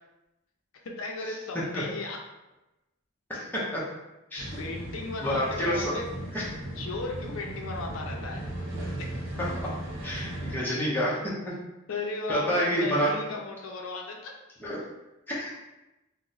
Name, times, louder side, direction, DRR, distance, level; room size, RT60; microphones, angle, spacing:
voice 1, 0.8-2.2 4.6-6.1 6.8-8.5 8.9-9.1 11.9-14.3, left 3 dB, 80° left, 1 dB, 0.5 m, -36 dB
voice 2, 3.3-3.8 4.3-4.5 5.2-5.9 6.3-6.4 10.0-11.5 12.3-13.1 14.6-14.8 15.3-15.5, equal, 10° left, -7 dB, 0.7 m, -28 dB
sound 1, 4.4-10.5, right 1 dB, 60° right, 0.8 m, -36 dB
2.9 x 2.1 x 3.8 m, 0.97 s
head